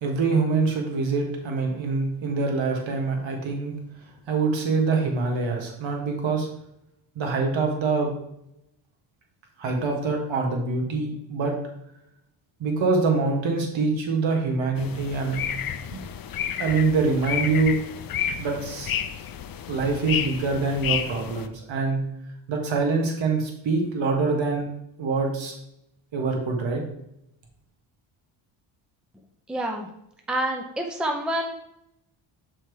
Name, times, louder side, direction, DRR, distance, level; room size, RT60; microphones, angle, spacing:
voice 1, 0.0-3.7 4.3-6.5 7.1-8.1 9.6-11.6 12.6-15.5 15.9-16.0 16.6-17.8 18.4-18.9 19.7-22.0 22.5-24.7 25.0-25.5 26.1-26.8, right 4 dB, 65° right, 2 dB, 1.8 m, -25 dB
sound 1, 14.8-21.5, left 9 dB, 45° left, 0.6 m, -31 dB
voice 2, 29.5-29.9 30.3-31.5, right 1 dB, ahead, 2 dB, 0.8 m, -27 dB
6.6 x 4.4 x 4.7 m, 0.80 s
cardioid pair, 100°, 50 cm